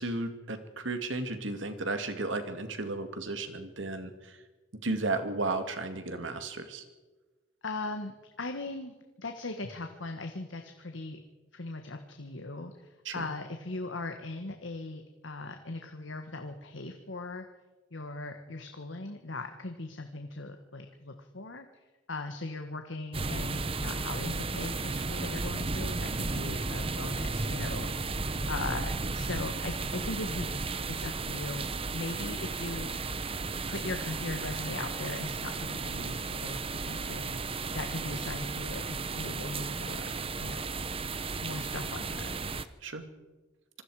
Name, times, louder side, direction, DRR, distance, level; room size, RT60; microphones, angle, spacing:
voice 1, 0.0-4.4 4.8-6.8 13.0-13.3 42.8-43.0, right 2 dB, 75° right, 8 dB, 2.2 m, -34 dB
voice 2, 7.6-11.2 11.5-17.4 17.9-31.7 31.9-32.9 33.7-37.4 37.7-40.1 40.4-40.7 41.4-42.4, left 2 dB, 75° left, 5 dB, 1.5 m, -39 dB
sound 1, 23.1-42.7, right 3 dB, 30° right, 0.9 m, -34 dB
26.0 x 20.5 x 4.9 m, 1.2 s
head